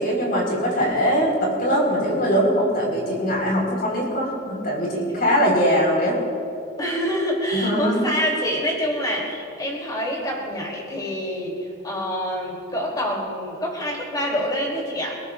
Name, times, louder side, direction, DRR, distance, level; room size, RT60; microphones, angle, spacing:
voice 1, 0.0-6.2 7.5-8.1, equal, 45° left, -2 dB, 4.7 m, -21 dB
voice 2, 6.8-15.2, equal, 20° left, -1 dB, 3.3 m, -26 dB
28.0 x 18.0 x 2.6 m, 2.7 s
head